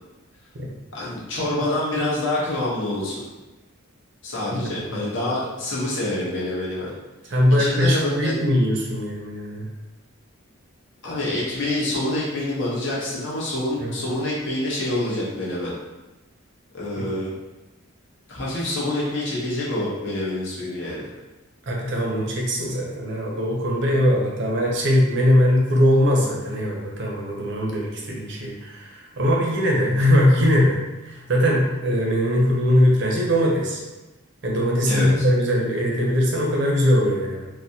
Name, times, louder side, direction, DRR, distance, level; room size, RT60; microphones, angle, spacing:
voice 1, 0.9-3.2 4.2-6.9 7.6-8.3 11.0-15.7 16.7-17.3 18.3-21.0 34.9-35.3, left 1 dB, 55° left, -7 dB, 1.1 m, -26 dB
voice 2, 4.5-5.2 7.3-9.7 13.8-13.9 17.0-17.1 21.7-33.8 34.4-37.5, equal, 55° right, -1 dB, 0.6 m, -21 dB
4.1 x 2.2 x 2.7 m, 1.1 s
head